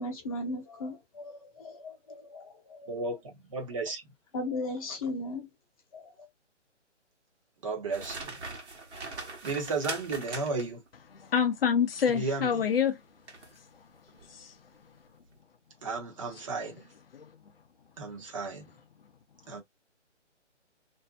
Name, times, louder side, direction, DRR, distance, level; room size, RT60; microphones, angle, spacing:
voice 1, 0.0-2.9 4.3-5.5 5.9-6.3, left 2 dB, 30° left, 0.9 m, -37 dB
voice 2, 2.9-3.2 3.5-4.0 7.6-8.4 9.4-10.8 12.1-12.7 15.8-16.9 18.0-18.6 19.5-19.6, right 3 dB, 25° right, 0.8 m, -33 dB
sound 1, 7.9-10.9 13.3-13.6 14.1-14.3, right 3 dB, 65° right, 1.1 m, -40 dB
voice 3, 11.2-13.0 14.3-14.5 17.1-17.3, left 7 dB, 50° left, 0.5 m, -27 dB
2.6 x 2.1 x 2.3 m
figure-of-eight pair, 150°, 36 cm